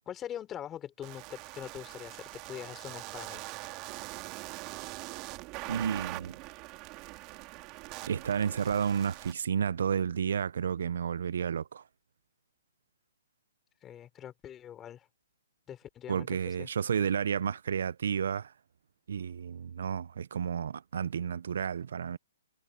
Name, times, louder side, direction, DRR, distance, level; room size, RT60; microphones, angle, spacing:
voice 1, 0.1-3.4 13.8-15.1 15.7-16.7, left 10 dB, 15° left, 4.0 m, -43 dB
sound 1, 1.0-9.3, right 23 dB, 30° right, 3.1 m, -43 dB
voice 2, 5.7-6.4 8.0-11.8 16.1-18.5 19.1-22.2, right 7 dB, 70° right, 0.5 m, -31 dB
hypercardioid pair, 150°, 0 cm